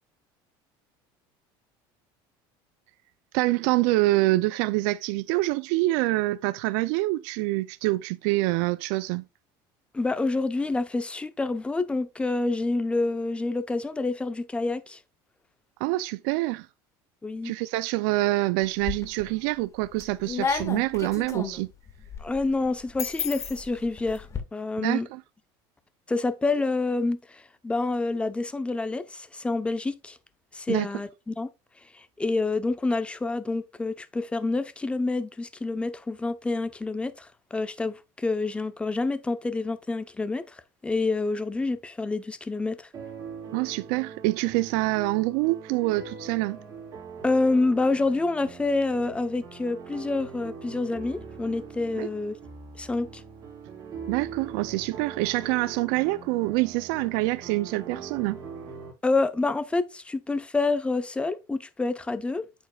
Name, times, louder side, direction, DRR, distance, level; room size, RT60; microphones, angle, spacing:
voice 1, 3.3-9.2 15.8-16.7 17.4-21.7 24.8-25.2 30.7-30.9 43.5-46.6 51.9-52.1 54.1-58.4, right 19 dB, 80° right, 0.4 m, -26 dB
voice 2, 9.9-15.0 17.2-17.5 22.2-24.3 24.5-25.1 26.1-30.2 30.5-31.5 31.9-42.9 47.2-52.4 52.8-53.2 59.0-62.5, left 3 dB, 10° left, 0.7 m, -28 dB
sound 1, 18.6-19.3 19.8-24.4, left 6 dB, 25° left, 1.7 m, -33 dB
sound 2, 42.9-58.9, right 5 dB, 30° right, 4.5 m, -42 dB
8.9 x 7.0 x 2.3 m
cardioid pair, 130°, 11 cm